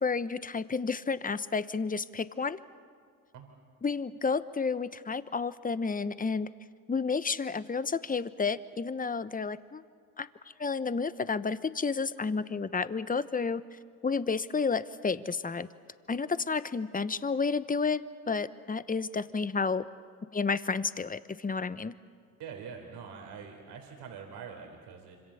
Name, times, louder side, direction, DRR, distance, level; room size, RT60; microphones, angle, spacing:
voice 1, 0.0-2.6 3.8-6.5 6.9-9.8 10.2-10.3 10.6-15.7 16.1-19.8 20.3-21.9, left 5 dB, 20° left, 15 dB, 1.0 m, -31 dB
voice 2, 22.4-25.2, right 6 dB, 75° right, 3 dB, 3.8 m, -44 dB
26.0 x 25.5 x 7.1 m, 2.1 s
supercardioid pair, 60°, 42 cm